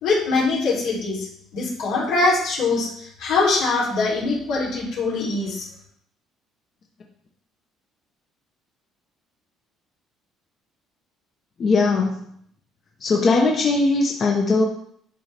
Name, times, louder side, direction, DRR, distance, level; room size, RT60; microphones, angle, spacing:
voice 1, 0.0-1.3 1.5-5.7, left 3 dB, 80° left, -5 dB, 3.1 m, -22 dB
voice 2, 11.6-12.2 13.0-14.7, left 3 dB, 35° left, 0 dB, 0.8 m, -19 dB
10.5 x 4.0 x 3.4 m, 0.67 s
cardioid pair, 140°, 0 cm